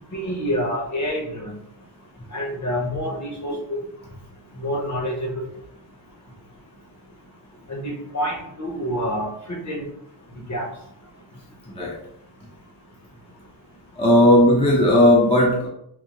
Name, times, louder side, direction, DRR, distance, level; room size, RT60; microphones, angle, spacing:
voice 1, 0.1-1.6 2.3-3.8 4.6-5.5 7.7-9.8 10.5-10.7, equal, 35° left, 0 dB, 0.8 m, -27 dB
voice 2, 14.0-15.7, left 1 dB, 15° left, -2 dB, 0.4 m, -16 dB
3.7 x 2.6 x 2.9 m, 0.73 s
wide cardioid pair, 155°, 50 cm